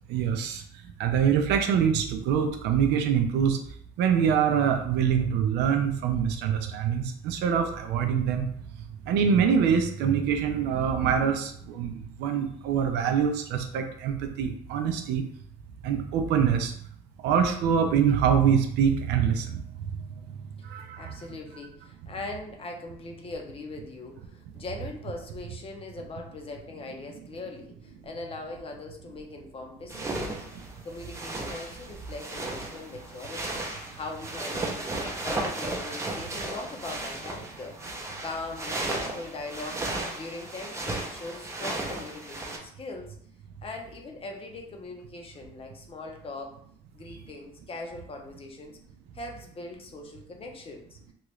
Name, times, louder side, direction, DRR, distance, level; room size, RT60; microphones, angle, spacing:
voice 1, 0.1-0.6 1.0-3.6 4.0-8.5 9.1-11.9 12.2-15.2 15.8-16.7 17.2-19.6 20.6-21.2, right 7 dB, 85° right, 5 dB, 0.5 m, -24 dB
voice 2, 21.0-30.3 30.8-33.6 33.9-37.8 38.2-39.9 40.1-43.2 43.6-46.5 46.9-48.8 49.1-51.0, left 3 dB, 35° left, 2 dB, 0.6 m, -40 dB
sound 1, 29.9-42.6, right 2 dB, 15° right, 0.6 m, -35 dB
3.0 x 2.4 x 3.0 m, 0.64 s
cardioid pair, 110°, 17 cm